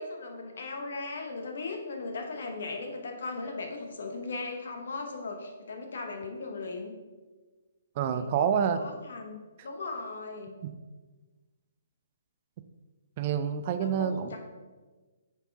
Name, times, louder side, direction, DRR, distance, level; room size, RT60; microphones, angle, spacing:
voice 1, 0.0-6.9 8.0-8.2 8.7-10.5 13.8-14.4, left 3 dB, 60° left, 3 dB, 1.1 m, -38 dB
voice 2, 8.0-8.8 10.6-10.7 13.2-14.4, right 8 dB, 40° right, 10 dB, 0.4 m, -28 dB
7.0 x 4.3 x 3.5 m, 1.3 s
figure-of-eight pair, 130°, 0 cm